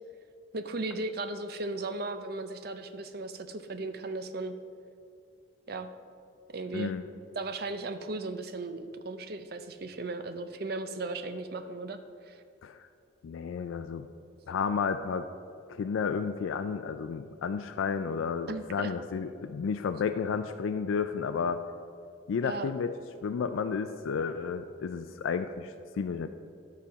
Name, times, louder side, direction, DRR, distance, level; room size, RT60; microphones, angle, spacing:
voice 1, 0.5-4.6 5.7-5.9 6.5-6.9 7.3-12.4 18.5-18.9 22.4-22.7, right 2 dB, 50° right, 8 dB, 0.5 m, -36 dB
voice 2, 6.7-7.0 12.6-12.8 13.2-14.1 14.5-15.3 15.7-21.6 22.3-22.9 23.2-26.3, left 6 dB, 80° left, 9 dB, 0.3 m, -32 dB
12.0 x 4.2 x 5.1 m, 2.5 s
head